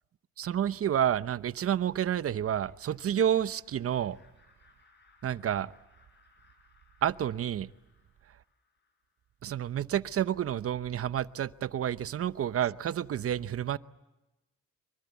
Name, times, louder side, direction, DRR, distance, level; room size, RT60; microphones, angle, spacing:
voice 1, 0.4-4.2 5.2-5.7 7.0-7.7 9.4-13.8, right 10 dB, 50° right, 0.8 m, -29 dB
Laughter, 2.5-9.3, left 4 dB, 35° left, 6.0 m, -66 dB
24.0 x 23.5 x 8.3 m
cardioid pair, 90°, 30 cm